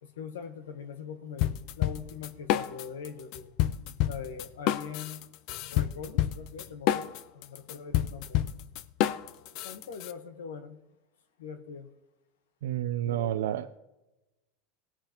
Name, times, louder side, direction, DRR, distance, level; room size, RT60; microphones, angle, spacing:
voice 1, 0.0-3.5 4.1-5.3 5.6-8.4 9.6-10.8 11.4-11.9 13.0-13.5, left 6 dB, 90° left, 8 dB, 1.2 m, -42 dB
sound 1, 1.4-3.1 3.3-10.1, left 12 dB, 60° left, 0.6 m, -28 dB
voice 2, 12.6-13.8, right 12 dB, 85° right, 10 dB, 0.5 m, -30 dB
18.5 x 8.7 x 3.0 m, 1.0 s
hypercardioid pair, 105°, 0 cm